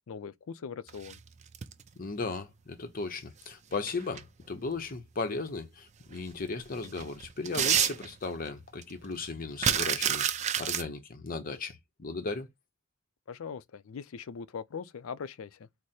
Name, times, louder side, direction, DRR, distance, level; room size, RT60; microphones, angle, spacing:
voice 1, 0.1-1.2 13.3-15.7, left 6 dB, 85° left, 0.4 m, -41 dB
sound 1, 0.9-1.9 3.5-4.2 4.8-4.9 6.1-6.2 6.6-8.5 8.8-8.9 9.1-10.8, right 9 dB, 35° right, 0.4 m, -29 dB
voice 2, 2.0-10.2 10.6-12.5, left 3 dB, 45° left, 0.7 m, -36 dB
4.7 x 2.1 x 4.1 m
head